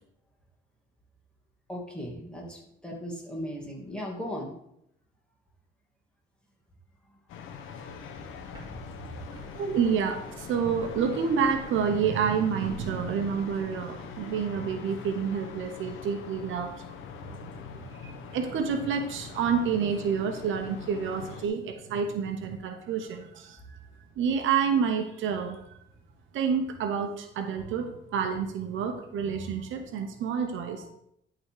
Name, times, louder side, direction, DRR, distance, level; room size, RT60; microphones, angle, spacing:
voice 1, 1.7-4.5 7.6-8.3 8.9-9.3 17.7-17.8, equal, 5° left, -2 dB, 2.6 m, -38 dB
sound 1, 7.3-21.5, left 6 dB, 85° left, 1.0 m, -43 dB
sound 2, 8.5-15.3, right 2 dB, 20° right, 3.0 m, -51 dB
voice 2, 9.4-17.0 17.4-17.5 17.9-23.8 24.2-25.8 26.3-30.9, right 6 dB, 80° right, 6 dB, 1.0 m, -29 dB
11.5 x 4.0 x 4.9 m, 0.74 s
cardioid pair, 90°, 20 cm